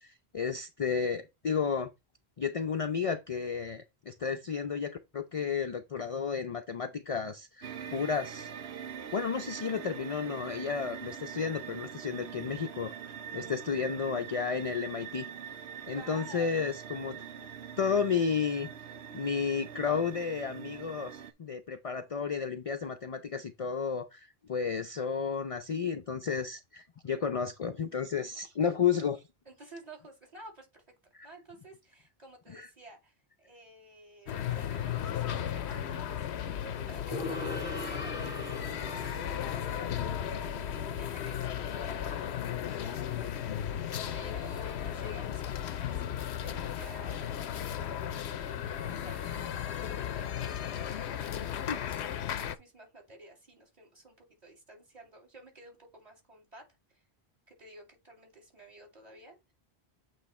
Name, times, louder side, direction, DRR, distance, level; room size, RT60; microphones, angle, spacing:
voice 1, 0.0-1.9 2.4-8.6 9.1-15.3 15.9-17.3 17.8-18.7 19.1-29.2 31.1-31.3 32.5-32.7 48.8-49.0 49.4-49.5 51.7-51.8, left 6 dB, 45° left, 0.5 m, -32 dB
sound 1, 7.6-21.3, right 8 dB, 90° right, 1.0 m, -43 dB
voice 2, 15.9-16.5 29.5-31.0 31.2-42.4 42.6-43.4 44.1-47.3 47.8-48.4 48.9-50.6 51.1-57.0 57.5-59.5, right 1 dB, 40° right, 2.6 m, -52 dB
sound 2, 34.3-52.6, left 10 dB, 90° left, 0.9 m, -35 dB
Gong, 37.1-44.6, left 2 dB, 20° right, 2.1 m, -43 dB
8.1 x 3.1 x 4.2 m
omnidirectional pair, 1.1 m